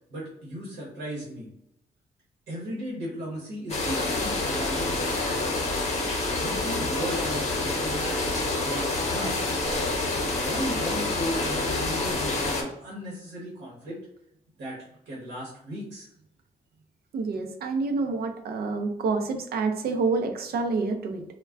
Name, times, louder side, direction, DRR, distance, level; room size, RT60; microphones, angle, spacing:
voice 1, 0.1-1.5 2.5-5.6 6.4-8.3 8.6-9.5 10.4-14.0 14.6-14.8 15.1-16.1, equal, 90° right, -4 dB, 0.9 m, -36 dB
sound 1, 3.7-12.6, left 2 dB, 40° left, 0.8 m, -27 dB
voice 2, 17.1-21.2, right 4 dB, 70° right, 6 dB, 0.5 m, -28 dB
2.3 x 2.2 x 3.4 m, 0.79 s
cardioid pair, 70°, 17 cm